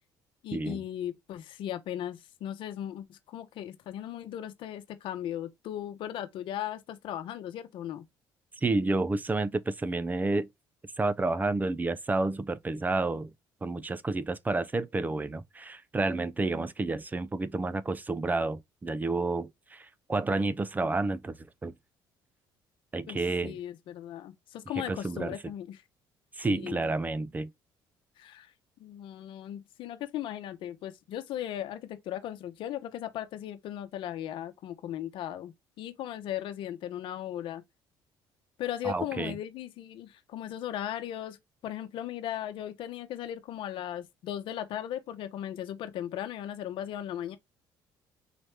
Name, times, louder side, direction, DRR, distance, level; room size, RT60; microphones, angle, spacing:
voice 1, 0.4-8.0 23.1-23.2 23.4-25.8 26.5-26.8 28.2-28.5 28.8-37.6 38.6-41.4 41.6-47.4, left 11 dB, 70° left, 0.8 m, -37 dB
voice 2, 8.6-10.5 11.0-13.3 13.6-21.4 21.6-21.7 22.9-23.6 24.8-25.4 26.4-27.5 38.8-39.4, right 3 dB, 20° right, 0.5 m, -30 dB
4.1 x 3.1 x 3.3 m
cardioid pair, 90°, 9 cm